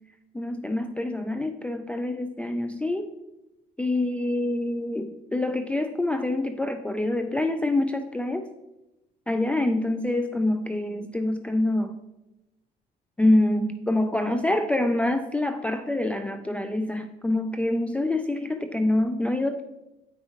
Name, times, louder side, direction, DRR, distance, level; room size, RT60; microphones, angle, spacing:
voice 1, 0.3-3.1 3.8-8.5 9.3-12.0 13.2-19.6, left 1 dB, 5° left, 6 dB, 0.3 m, -26 dB
8.6 x 5.6 x 2.9 m, 0.97 s
cardioid pair, 110°, 17 cm